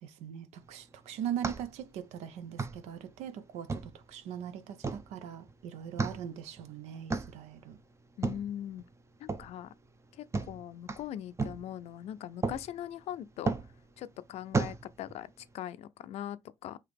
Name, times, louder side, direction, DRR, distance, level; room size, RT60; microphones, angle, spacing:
voice 1, 0.0-7.8, right 9 dB, 90° right, 0.5 m, -41 dB
sound 1, 0.6-15.5, right 4 dB, 25° right, 0.7 m, -38 dB
voice 2, 8.2-8.9 9.2-9.7 10.1-13.5 14.0-16.8, left 11 dB, 75° left, 0.4 m, -41 dB
4.8 x 2.9 x 3.4 m
cardioid pair, 75°, 11 cm